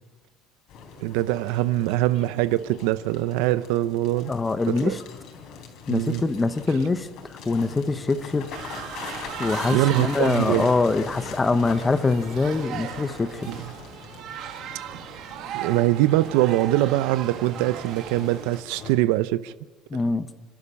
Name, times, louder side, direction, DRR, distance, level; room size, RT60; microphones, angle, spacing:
sound 1, 0.7-18.9, left 5 dB, 50° left, 3.5 m, -41 dB
voice 1, 1.0-4.3 4.7-5.0 5.9-6.2 9.7-10.7 13.5-13.6 15.5-19.5, right 16 dB, 90° right, 0.7 m, -23 dB
voice 2, 4.3-5.0 5.9-7.1 7.4-8.5 9.4-13.5 19.9-20.3, left 3 dB, 10° left, 0.8 m, -24 dB
sound 2, 8.5-18.6, right 10 dB, 45° right, 1.3 m, -37 dB
28.0 x 12.0 x 8.5 m
cardioid pair, 175°, 0 cm